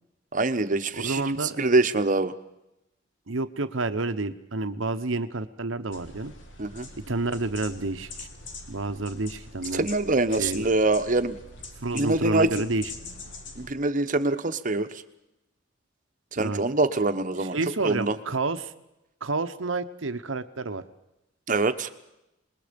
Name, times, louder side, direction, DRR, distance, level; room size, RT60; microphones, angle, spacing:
voice 1, 0.3-2.3 6.6-6.9 9.7-11.4 11.9-12.6 13.6-15.0 16.3-17.6 17.8-18.2 21.5-21.9, right 2 dB, 45° right, 9 dB, 1.1 m, -24 dB
voice 2, 0.9-1.6 3.3-6.3 7.0-8.3 8.7-9.9 10.4-10.7 11.8-12.9 16.4-16.6 17.4-18.7 19.2-20.8, right 3 dB, 85° right, 10 dB, 1.1 m, -29 dB
sound 1, 5.9-13.7, left 3 dB, 70° left, 2.5 m, -43 dB
27.0 x 21.0 x 5.3 m, 0.89 s
head